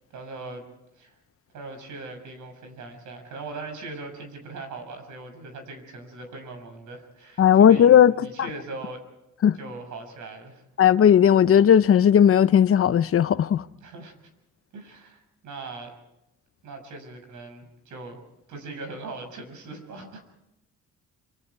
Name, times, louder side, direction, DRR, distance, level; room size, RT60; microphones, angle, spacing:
voice 1, 0.1-0.6 0.9-1.2 1.5-9.0 9.5-10.6 13.8-14.1 14.7-15.9 16.6-18.2 18.5-20.2, right 3 dB, 75° right, 6.7 m, -40 dB
voice 2, 7.4-8.1 9.4-9.6 10.8-13.7, left 9 dB, 50° left, 0.7 m, -16 dB
27.0 x 25.5 x 4.7 m
cardioid pair, 90°, 30 cm